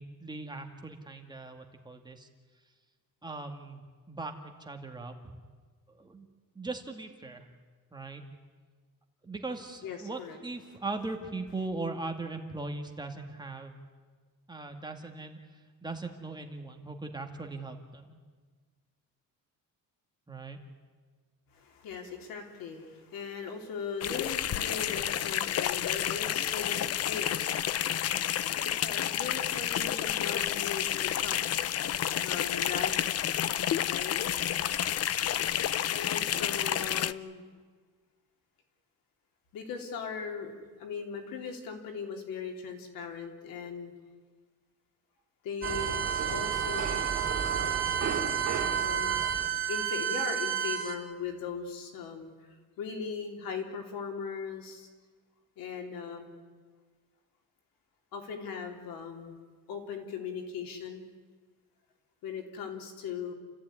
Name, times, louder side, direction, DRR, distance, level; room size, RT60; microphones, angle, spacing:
voice 1, 0.0-2.3 3.2-5.3 5.9-6.3 6.6-7.5 7.9-8.2 9.2-13.8 14.5-18.2 20.3-20.6 28.8-29.1 36.3-36.6, right 3 dB, 15° right, 3 dB, 2.3 m, -40 dB
voice 2, 9.8-10.4 21.5-31.5 32.2-33.1 33.9-34.2 35.9-37.4 39.5-43.9 45.4-47.0 48.8-49.3 49.7-52.3 52.8-54.9 55.6-56.3 58.1-59.4 59.7-61.0 62.2-63.3, left 5 dB, 90° left, 3 dB, 3.8 m, -39 dB
sound 1, 24.0-37.1, left 11 dB, 45° left, 0.6 m, -30 dB
sound 2, 45.6-51.0, right 8 dB, 40° right, 3.4 m, -30 dB
29.5 x 15.0 x 9.9 m, 1.5 s
cardioid pair, 150°, 34 cm